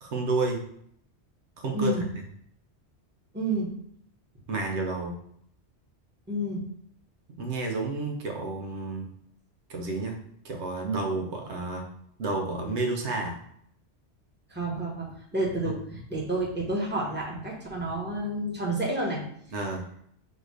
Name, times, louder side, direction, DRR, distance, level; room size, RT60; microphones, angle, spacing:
voice 1, 0.0-0.6 1.6-2.0 4.5-5.1 7.4-9.1 9.7-10.2 10.4-11.9 12.2-13.4 15.6-15.8 19.5-19.8, right 3 dB, 80° right, 1 dB, 1.1 m, -30 dB
voice 2, 1.7-2.1 3.3-3.7 6.3-6.6 14.5-19.2, right 1 dB, 10° right, -4 dB, 1.0 m, -30 dB
4.3 x 2.6 x 4.7 m, 0.67 s
omnidirectional pair, 1.1 m